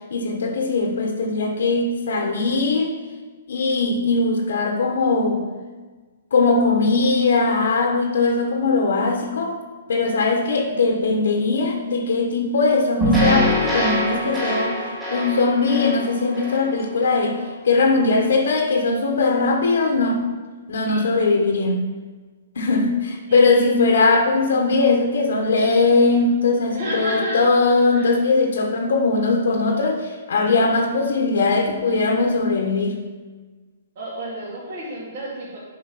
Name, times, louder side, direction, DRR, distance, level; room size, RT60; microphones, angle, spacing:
voice 1, 0.1-2.9 3.5-5.4 6.3-9.6 9.9-14.8 15.1-17.3 17.6-20.2 20.7-21.8 22.6-33.0, left 3 dB, 80° left, 3 dB, 1.2 m, -20 dB
sound 1, 13.0-17.3, equal, 10° right, 3.0 m, -23 dB
voice 2, 20.8-21.2 23.3-23.7 26.7-27.4 27.9-28.1 33.9-35.6, right 1 dB, 45° right, -9 dB, 2.8 m, -31 dB
8.8 x 5.4 x 5.6 m, 1.4 s
hypercardioid pair, 165°, 0 cm